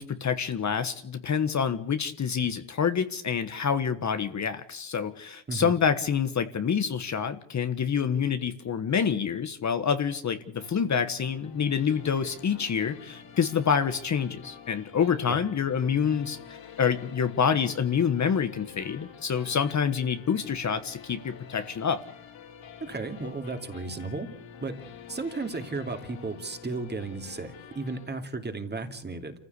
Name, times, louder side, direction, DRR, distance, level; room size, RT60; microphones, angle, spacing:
voice 1, 0.0-22.0, left 7 dB, 35° left, 9 dB, 1.4 m, -27 dB
sound 1, 10.6-28.1, left 7 dB, 60° left, 4.2 m, -48 dB
voice 2, 22.8-24.3 24.6-24.8 25.1-29.3, right 3 dB, 20° right, 6 dB, 2.7 m, -34 dB
27.5 x 15.5 x 8.3 m, 0.67 s
cardioid pair, 120°, 50 cm